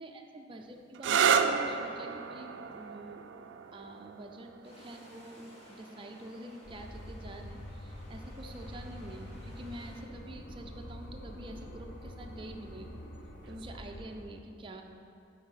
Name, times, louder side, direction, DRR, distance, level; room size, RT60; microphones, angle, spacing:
voice 1, 0.0-3.2 3.7-13.0 13.5-14.8, right 1 dB, 30° right, 3 dB, 0.5 m, -47 dB
sound 1, 0.9-8.4 9.4-9.9 13.4-13.8, right 7 dB, 90° right, 0.3 m, -33 dB
sound 2, 4.6-10.0, equal, 35° left, 1.4 m, -56 dB
sound 3, 6.6-14.2, equal, 65° left, 0.9 m, -46 dB
8.4 x 3.5 x 5.7 m, 2.5 s
head